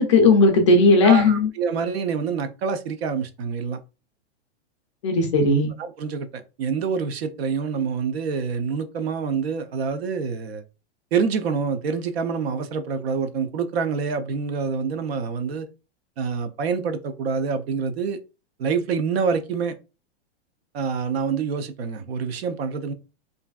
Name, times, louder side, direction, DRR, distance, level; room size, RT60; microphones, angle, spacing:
voice 1, 0.0-1.5 5.0-5.7, left 3 dB, 30° left, 0.4 m, -16 dB
voice 2, 1.0-3.8 5.8-10.6 11.1-15.7 16.2-18.2 18.6-19.7 20.7-22.9, right 5 dB, 65° right, 0.5 m, -26 dB
3.2 x 2.5 x 2.2 m
supercardioid pair, 165°, 34 cm